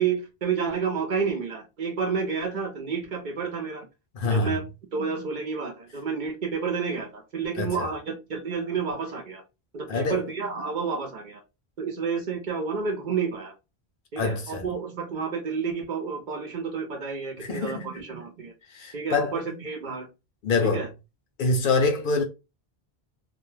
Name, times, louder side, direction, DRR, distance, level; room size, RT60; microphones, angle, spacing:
voice 1, 0.0-3.9 4.2-4.6 4.9-9.4 9.7-11.4 11.8-13.5 14.1-18.5 18.9-20.1 20.6-20.9, right 5 dB, 55° right, 0.6 m, -30 dB
voice 2, 4.1-4.6 7.6-7.9 9.9-10.2 14.2-14.6 17.4-17.9 18.7-19.4 20.4-20.9 21.4-22.2, left 3 dB, 60° left, 0.6 m, -25 dB
2.2 x 2.2 x 3.0 m
omnidirectional pair, 1.1 m